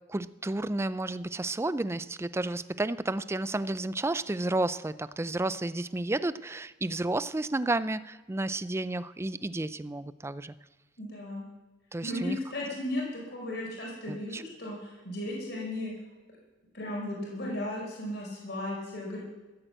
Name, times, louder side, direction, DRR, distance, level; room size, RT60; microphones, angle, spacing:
voice 1, 0.1-10.5 11.9-12.4 14.1-14.4, right 2 dB, 15° right, 15 dB, 0.4 m, -31 dB
voice 2, 11.0-11.5 12.0-15.9 16.7-19.2, left 1 dB, 65° left, -3 dB, 4.7 m, -35 dB
14.5 x 8.9 x 7.9 m, 1.2 s
head